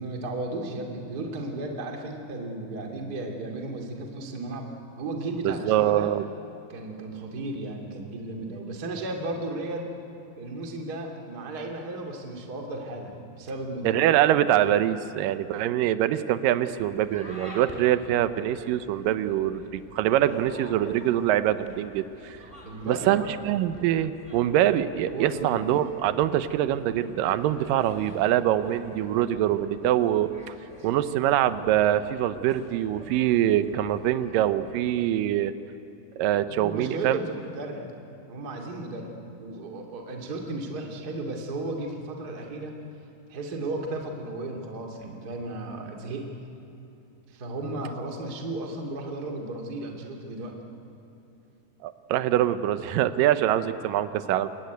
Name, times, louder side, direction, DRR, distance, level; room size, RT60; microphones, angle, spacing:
voice 1, 0.0-6.1 6.7-9.9 10.4-14.1 22.6-23.3 25.1-25.6 36.5-37.9 38.3-39.1 39.4-42.7 43.3-46.3 47.3-50.6 53.4-53.5, right 2 dB, 30° right, 1 dB, 2.4 m, -34 dB
voice 2, 5.4-6.2 13.8-22.4 22.8-30.3 30.8-35.5 36.2-37.2 51.8-54.5, right 12 dB, 75° right, 12 dB, 2.0 m, -24 dB
sound 1, 16.7-35.0, equal, 10° left, 3.8 m, -47 dB
27.0 x 21.5 x 9.3 m, 2.8 s
omnidirectional pair, 4.8 m